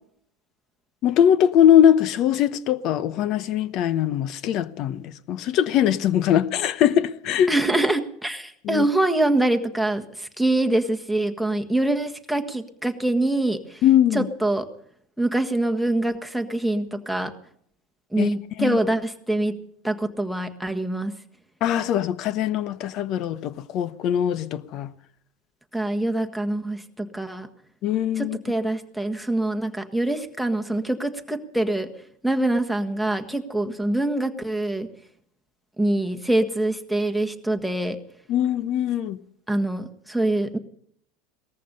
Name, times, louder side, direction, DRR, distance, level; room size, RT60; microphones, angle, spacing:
voice 1, 1.0-7.5 8.6-8.9 13.8-14.3 18.2-18.3 18.6-18.8 21.6-24.9 27.8-28.4 38.3-39.2, left 10 dB, 50° left, 0.9 m, -21 dB
voice 2, 7.5-13.8 14.1-14.7 15.2-17.3 18.1-19.5 19.8-21.1 25.7-27.5 28.2-31.9 32.2-34.9 35.8-38.0 39.5-40.6, right 1 dB, ahead, 1.6 m, -24 dB
18.5 x 14.0 x 5.5 m
supercardioid pair, 115°, 0 cm